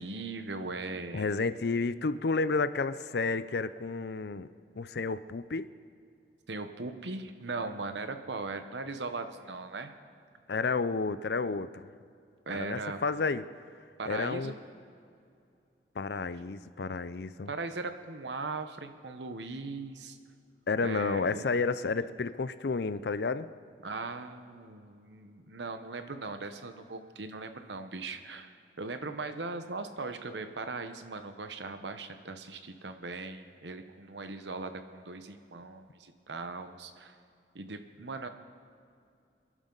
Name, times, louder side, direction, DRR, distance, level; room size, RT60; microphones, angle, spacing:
voice 1, 0.0-1.3 6.5-9.9 12.5-13.0 14.0-14.5 17.5-20.2 20.8-21.4 23.8-37.2 37.5-38.3, right 3 dB, 80° right, 8 dB, 1.0 m, -39 dB
voice 2, 1.1-4.5 4.8-5.7 10.5-11.9 12.5-13.4 14.1-14.5 16.0-17.5 20.7-23.5, left 4 dB, 65° left, 14 dB, 0.5 m, -31 dB
28.0 x 11.0 x 4.0 m, 2.4 s
head